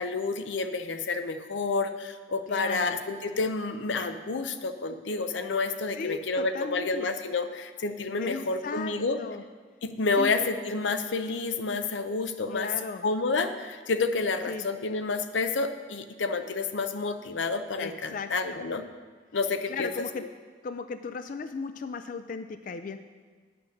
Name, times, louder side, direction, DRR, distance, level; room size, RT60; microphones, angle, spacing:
voice 1, 0.0-9.2 9.8-12.7 13.0-18.8 19.3-20.1, left 3 dB, 90° left, 9 dB, 0.6 m, -29 dB
voice 2, 2.5-3.0 5.9-7.1 8.2-9.4 10.2-10.3 12.5-13.0 14.5-14.7 17.8-18.6 19.7-20.2 20.6-23.0, left 4 dB, 45° left, 10 dB, 0.3 m, -36 dB
9.6 x 6.0 x 6.4 m, 1.5 s
head